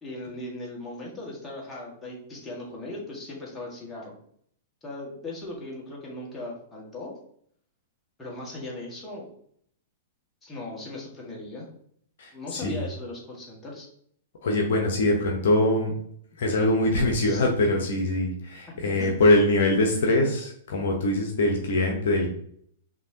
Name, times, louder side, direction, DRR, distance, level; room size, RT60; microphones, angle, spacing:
voice 1, 0.0-4.1 4.8-7.1 8.2-9.3 10.4-11.7 12.3-13.9 17.2-17.4 18.8-19.1, left 2 dB, 15° left, -4 dB, 1.5 m, -38 dB
voice 2, 12.2-12.8 14.4-15.9 16.4-22.3, left 1 dB, 65° left, 1 dB, 0.8 m, -23 dB
5.2 x 2.9 x 2.7 m, 0.65 s
figure-of-eight pair, 105°, 0 cm